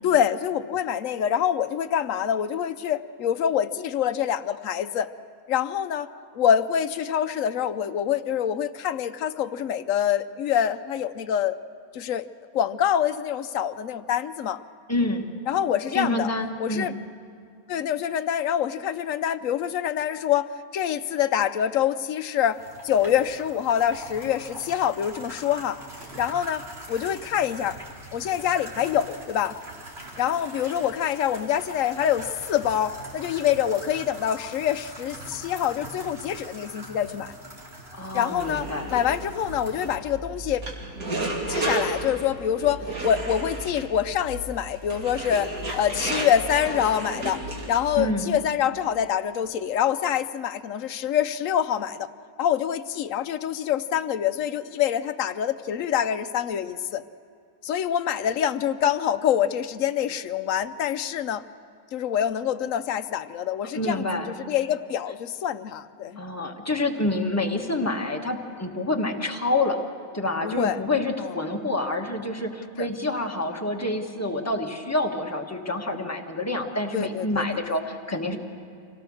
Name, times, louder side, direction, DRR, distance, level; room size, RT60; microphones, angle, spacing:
voice 1, 0.0-5.1 5.5-6.1 6.3-11.6 11.9-12.3 12.5-14.6 15.5-16.3 16.6-16.9 17.7-22.6 22.8-25.8 26.2-26.6 26.9-27.8 28.1-29.6 30.2-37.3 38.1-40.6 41.5-52.1 52.4-57.0 57.6-61.4 61.9-66.2 70.4-70.8 71.2-71.3 72.8-72.9 76.9-77.6, left 9 dB, 70° left, 12 dB, 1.0 m, -25 dB
voice 2, 14.9-15.3 15.9-16.9 37.9-38.9 48.0-48.3 63.7-64.3 66.2-69.8 70.1-78.4, left 2 dB, 10° left, 2 dB, 1.4 m, -27 dB
sound 1, 22.5-40.0, right 1 dB, 45° right, 3.3 m, -43 dB
sound 2, 38.3-48.0, right 2 dB, 85° right, 2.9 m, -33 dB
25.5 x 17.5 x 6.4 m, 2.5 s
omnidirectional pair, 1.5 m